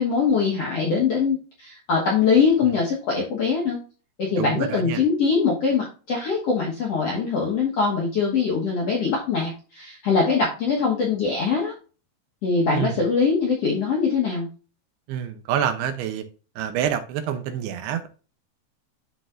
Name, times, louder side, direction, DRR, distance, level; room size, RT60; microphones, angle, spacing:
voice 1, 0.0-3.8 4.2-11.7 12.4-14.5, left 5 dB, 65° left, 1.5 m, -22 dB
voice 2, 4.4-5.0 12.7-13.0 15.1-16.3 16.6-18.1, right 9 dB, 85° right, 2.7 m, -27 dB
12.5 x 4.2 x 2.5 m
omnidirectional pair, 4.7 m